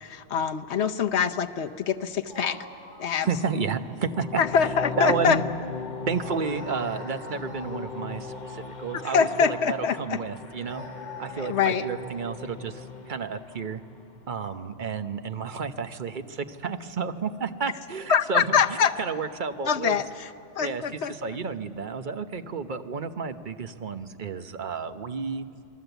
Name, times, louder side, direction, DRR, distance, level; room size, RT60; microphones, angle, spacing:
voice 1, 0.0-2.6 3.0-3.3 4.4-5.4 9.0-10.2 11.4-11.9 18.1-18.9 19.6-20.3 20.6-21.1, left 6 dB, 65° left, 8 dB, 1.1 m, -24 dB
sound 1, 2.2-4.1 4.4-4.6 6.1-9.9 10.6-13.0 14.3-14.5, equal, 20° right, 5.6 m, -45 dB
voice 2, 3.2-4.4 5.0-5.4 6.1-10.8 11.2-13.8 14.3-20.0 20.6-25.5, right 5 dB, 45° right, 9 dB, 1.0 m, -31 dB
sound 2, 3.9-14.0, left 4 dB, 40° left, 1.2 m, -39 dB
28.5 x 21.0 x 8.1 m, 2.5 s
omnidirectional pair, 1.3 m